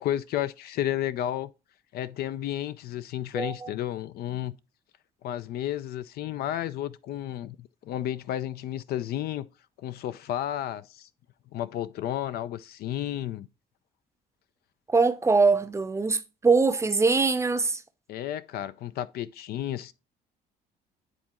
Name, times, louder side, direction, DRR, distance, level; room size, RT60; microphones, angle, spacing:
voice 1, 0.0-1.5 1.9-4.6 5.2-9.5 9.8-11.1 11.5-13.5 18.1-19.9, left 12 dB, 65° left, 0.5 m, -32 dB
voice 2, 3.3-3.7 14.9-17.8, right 4 dB, 15° right, 0.6 m, -23 dB
9.6 x 3.8 x 2.9 m
cardioid pair, 110°, 17 cm